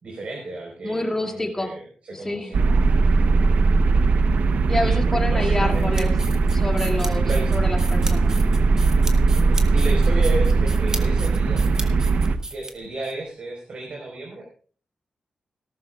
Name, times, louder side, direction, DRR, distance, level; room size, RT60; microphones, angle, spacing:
voice 1, 0.0-3.6 4.8-5.0 5.3-6.1 7.2-7.5 9.3-11.7 12.5-14.5, right 2 dB, 60° right, -1 dB, 4.3 m, -33 dB
voice 2, 0.8-1.7 2.1-2.5 4.7-6.1 6.5-8.4, left 2 dB, 20° left, 2 dB, 2.4 m, -28 dB
sound 1, 2.5-12.4, right 3 dB, 85° right, 0.8 m, -19 dB
sound 2, 5.7-13.1, right 2 dB, 25° right, 1.6 m, -36 dB
18.5 x 12.5 x 2.4 m, 0.42 s
wide cardioid pair, 115°, 2 cm